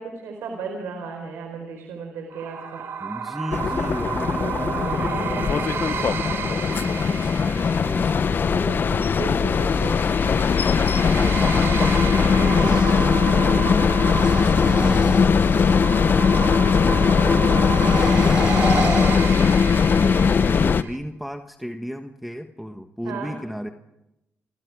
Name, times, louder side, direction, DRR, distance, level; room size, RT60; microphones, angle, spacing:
voice 1, 0.0-2.9 8.4-10.0 13.4-13.7 19.9-20.2 23.0-23.3, right 4 dB, 90° right, 3 dB, 4.5 m, -35 dB
sound 1, 2.3-21.0, right 6 dB, 70° right, 2.9 m, -31 dB
voice 2, 3.0-10.1 11.1-19.6 20.0-23.7, equal, ahead, 6 dB, 1.4 m, -34 dB
sound 2, 3.5-20.8, left 6 dB, 50° left, 0.7 m, -20 dB
sound 3, 9.5-13.2 14.0-16.0 17.6-19.9, right 1 dB, 20° right, 4.8 m, -31 dB
29.5 x 25.5 x 4.9 m, 0.94 s
cardioid pair, 65°, 4 cm